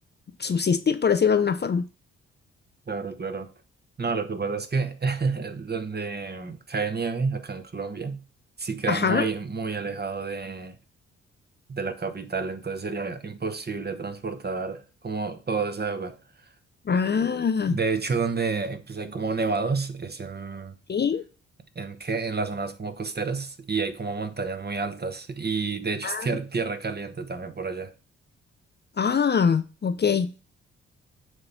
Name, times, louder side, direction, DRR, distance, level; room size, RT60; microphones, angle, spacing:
voice 1, 0.4-1.9 8.9-9.3 16.9-17.8 20.9-21.2 26.0-26.4 29.0-30.3, left 6 dB, 35° left, 0.6 m, -23 dB
voice 2, 2.9-3.5 4.0-8.2 8.6-10.8 11.7-16.2 17.7-20.7 21.7-27.9, right 4 dB, 30° right, 1.1 m, -30 dB
7.9 x 2.9 x 5.6 m
hypercardioid pair, 40°, 31 cm